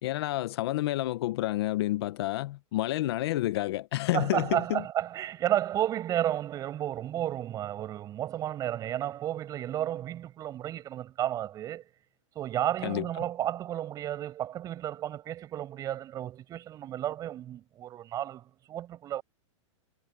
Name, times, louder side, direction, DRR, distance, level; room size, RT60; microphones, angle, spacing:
voice 1, 0.0-4.8 12.8-13.0, left 16 dB, 55° left, 1.0 m, -29 dB
voice 2, 4.1-11.8 12.3-19.2, right 12 dB, 20° right, 6.7 m, -32 dB
supercardioid pair, 160°, 16 cm